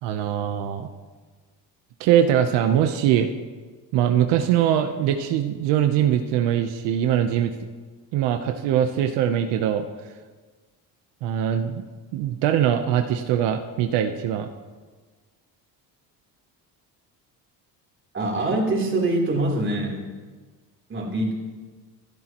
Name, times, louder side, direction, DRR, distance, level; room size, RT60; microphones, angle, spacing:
voice 1, 0.0-0.9 2.0-3.3 3.9-7.5 8.1-9.8 11.2-11.8 12.1-14.5, right 10 dB, 85° right, 6 dB, 0.9 m, -22 dB
voice 2, 18.1-20.1 20.9-21.3, right 2 dB, 30° right, -1 dB, 3.6 m, -24 dB
26.5 x 12.0 x 3.0 m, 1.4 s
cardioid pair, 135°, 42 cm